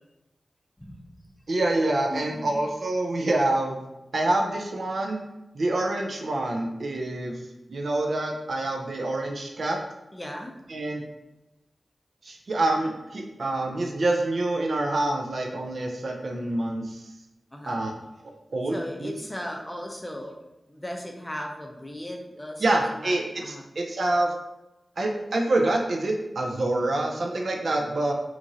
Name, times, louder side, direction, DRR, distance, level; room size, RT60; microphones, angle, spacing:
voice 1, 1.5-3.8 4.1-5.2 5.5-7.4 7.7-9.8 10.7-11.0 12.2-17.0 17.7-17.9 18.5-19.1 22.6-24.3 25.0-28.1, right 2 dB, 70° right, 1 dB, 0.4 m, -26 dB
voice 2, 2.1-2.5 10.1-10.6 17.5-17.8 18.7-20.4 20.7-23.1 23.4-23.7, left 1 dB, 15° left, 1 dB, 0.5 m, -37 dB
2.9 x 2.4 x 2.6 m, 0.96 s
wide cardioid pair, 75°, 0 cm